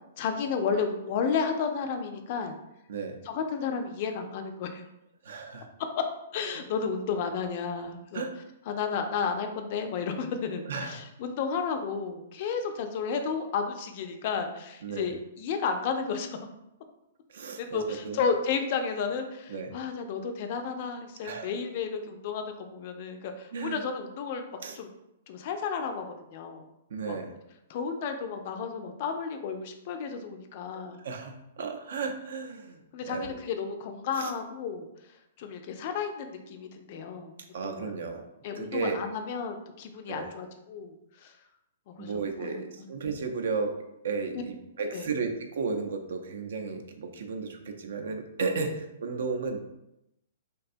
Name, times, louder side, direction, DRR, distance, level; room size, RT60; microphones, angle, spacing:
voice 1, 0.2-2.6 3.3-4.8 6.0-6.1 6.3-8.3 8.7-16.4 17.6-24.4 24.8-24.9 25.3-26.7 27.1-27.2 27.7-31.0 32.9-34.9 35.4-37.3 37.6-37.9 38.4-40.9 41.2-41.3 41.9-42.6 44.9-45.1, left 6 dB, 50° left, 6 dB, 0.3 m, -32 dB
voice 2, 2.9-3.2 5.2-5.7 6.5-6.6 8.1-8.3 10.6-11.0 14.8-15.1 17.3-18.2 19.5-19.8 21.2-21.5 23.5-23.8 24.6-24.8 26.9-27.3 30.7-33.3 34.2-34.3 37.5-38.2 38.5-38.9 40.1-40.3 42.0-43.8 44.0-49.6, right 4 dB, 70° right, 5 dB, 0.4 m, -34 dB
2.6 x 2.2 x 2.5 m, 0.85 s
hypercardioid pair, 120°, 0 cm